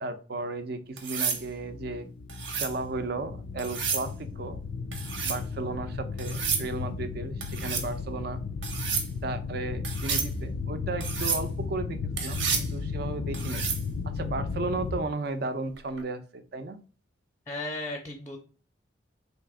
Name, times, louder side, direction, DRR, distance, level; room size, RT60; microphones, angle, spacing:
voice 1, 0.0-2.1 2.5-4.6 5.2-8.4 9.2-13.7 14.0-16.8, right 3 dB, 55° right, 9 dB, 0.6 m, -34 dB
sound 1, 1.0-1.4 2.3-2.7 3.6-4.1 4.9-5.4 6.2-6.7 7.4-7.9 8.6-9.1 9.8-10.3 11.0-11.4 12.2-12.7 13.3-13.8 15.8-16.0, right 6 dB, 80° right, 1.0 m, -31 dB
sound 2, 1.2-15.0, left 4 dB, 75° left, 0.4 m, -35 dB
voice 2, 17.5-18.4, left 2 dB, 15° left, 3 dB, 0.5 m, -35 dB
3.3 x 2.9 x 4.7 m, 0.37 s
head